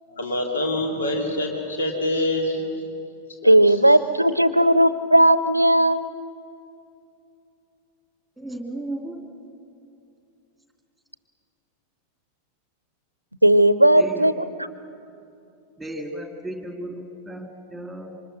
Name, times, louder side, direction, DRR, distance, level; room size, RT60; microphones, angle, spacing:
voice 1, 0.2-2.6 3.4-3.7, left 1 dB, 70° left, 1 dB, 2.7 m, -25 dB
voice 2, 3.4-6.1 13.4-14.7, right 1 dB, 85° right, 15 dB, 0.7 m, -16 dB
voice 3, 8.4-9.2 14.0-14.3 15.8-18.2, right 1 dB, ahead, 3 dB, 3.0 m, -34 dB
27.0 x 25.0 x 6.3 m, 2.7 s
figure-of-eight pair, 90°, 0 cm